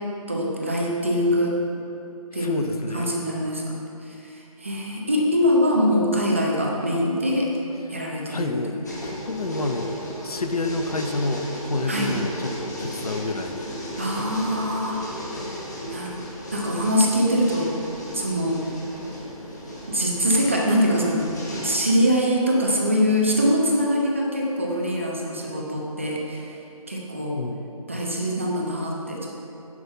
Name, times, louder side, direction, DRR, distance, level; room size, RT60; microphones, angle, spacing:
voice 1, 0.3-1.6 2.3-7.6 7.9-8.6 11.9-12.1 14.0-15.0 15.4-15.6 15.9-16.2 16.5-17.7 18.1-18.6 19.9-21.3 21.6-26.6 26.9-27.4 27.9-29.3, equal, 20° right, -2 dB, 0.7 m, -23 dB
voice 2, 2.4-3.2 7.9-8.0 8.3-10.0 10.2-14.3 27.4-27.6, left 2 dB, 80° left, 6 dB, 0.8 m, -29 dB
sound 1, 8.8-21.8, equal, 30° left, 1.2 m, -35 dB
9.5 x 6.1 x 5.4 m, 2.8 s
hypercardioid pair, 180°, 19 cm